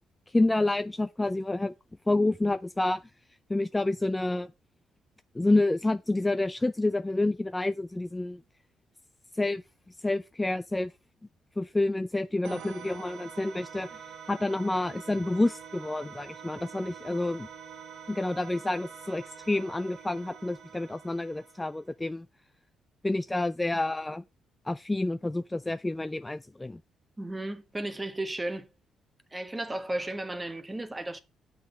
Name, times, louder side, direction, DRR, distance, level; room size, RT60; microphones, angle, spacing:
voice 1, 0.3-1.7 2.1-3.0 3.5-4.5 5.3-8.4 9.4-9.6 10.0-10.9 11.6-14.0 14.3-17.5 18.1-22.3 23.0-24.2 24.7-26.8, left 2 dB, 15° left, 0.4 m, -28 dB
sound 1, 12.4-21.9, right 7 dB, 80° right, 1.1 m, -46 dB
voice 2, 27.2-28.7 29.3-31.2, right 1 dB, 15° right, 1.2 m, -34 dB
7.3 x 3.9 x 6.5 m
cardioid pair, 90°, 0 cm